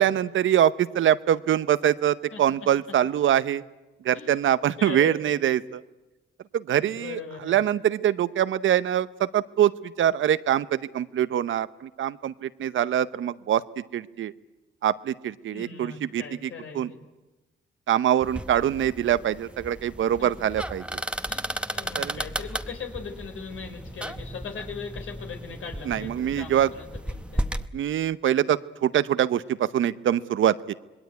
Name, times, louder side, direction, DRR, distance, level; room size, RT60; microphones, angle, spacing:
voice 1, 0.0-3.6 4.0-5.8 6.5-14.3 14.8-16.9 17.9-21.0 22.0-22.2 25.8-26.7 27.7-30.7, right 10 dB, 75° right, 16 dB, 0.8 m, -24 dB
voice 2, 2.3-2.7 4.1-4.3 4.8-5.4 6.8-7.5 15.5-16.8 20.2-20.3 21.3-21.4 21.7-27.4, left 5 dB, 80° left, 3 dB, 3.9 m, -39 dB
sound 1, 18.2-27.7, right 1 dB, 5° right, 1.0 m, -35 dB
26.5 x 20.5 x 9.3 m, 1.1 s
cardioid pair, 80°, 21 cm